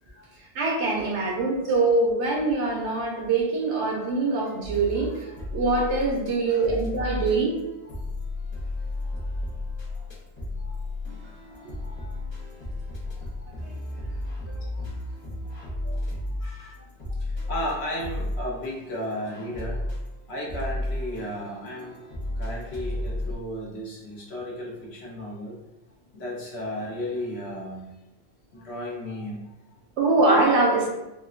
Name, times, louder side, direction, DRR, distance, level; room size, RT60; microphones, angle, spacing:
voice 1, 0.5-7.6 13.6-13.8 15.8-16.0 30.0-30.9, right 3 dB, 85° right, -2 dB, 1.1 m, -23 dB
sound 1, 4.6-6.3 6.6-23.3, left 1 dB, 25° left, 0.8 m, -33 dB
voice 2, 11.5-12.3 13.0-13.5 14.5-14.9 16.2-16.9 17.2-20.0 20.3-22.1 22.3-25.6 26.1-27.9 28.5-29.8, left 1 dB, 70° left, -2 dB, 1.0 m, -35 dB
3.5 x 2.2 x 2.4 m, 0.97 s
omnidirectional pair, 1.1 m